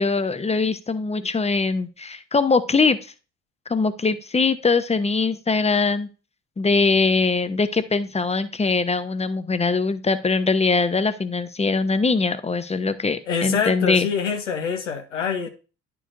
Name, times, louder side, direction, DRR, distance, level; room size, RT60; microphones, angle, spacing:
voice 1, 0.0-3.0 3.7-6.1 6.6-14.1, left 4 dB, 20° left, 12 dB, 0.7 m, -22 dB
voice 2, 13.3-15.5, left 6 dB, 85° left, 5 dB, 0.8 m, -25 dB
11.0 x 4.7 x 2.5 m, 0.34 s
figure-of-eight pair, 45°, 36 cm